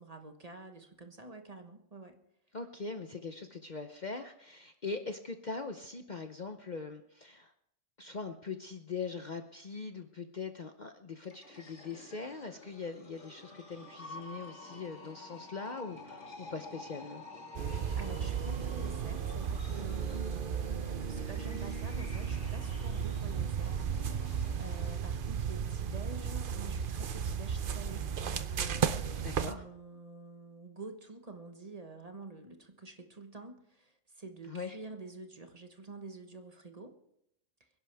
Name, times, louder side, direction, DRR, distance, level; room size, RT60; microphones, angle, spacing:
voice 1, 0.0-2.2 18.0-37.0, right 3 dB, 30° right, 5 dB, 1.3 m, -48 dB
voice 2, 2.5-7.5 8.0-17.2 29.2-29.6 34.5-34.8, left 4 dB, 40° left, 6 dB, 0.8 m, -41 dB
sound 1, 11.2-25.0, left 2 dB, 60° left, 2.5 m, -50 dB
sound 2, 17.5-29.5, right 7 dB, 50° right, 0.8 m, -34 dB
25.0 x 11.0 x 3.4 m, 0.77 s
omnidirectional pair, 1.3 m